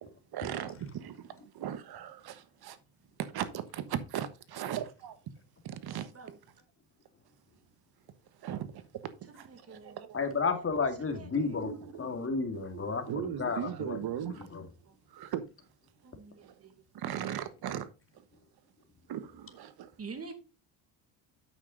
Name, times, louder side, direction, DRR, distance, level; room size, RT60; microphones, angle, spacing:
voice 1, 0.0-2.8 3.2-5.2 5.6-6.1 8.4-10.2 11.3-12.0 12.5-14.5 15.1-15.4 16.4-16.6 16.9-17.9 19.1-19.9, right 10 dB, 55° right, 1.4 m, -38 dB
voice 2, 9.5-10.1 11.0-11.8 16.0-16.7 20.0-20.3, right 4 dB, 30° right, 2.2 m, -47 dB
voice 3, 10.1-11.7 12.0-13.0 13.4-14.0, left 4 dB, 30° left, 2.3 m, -31 dB
8.7 x 6.3 x 4.0 m
cardioid pair, 95°, 45 cm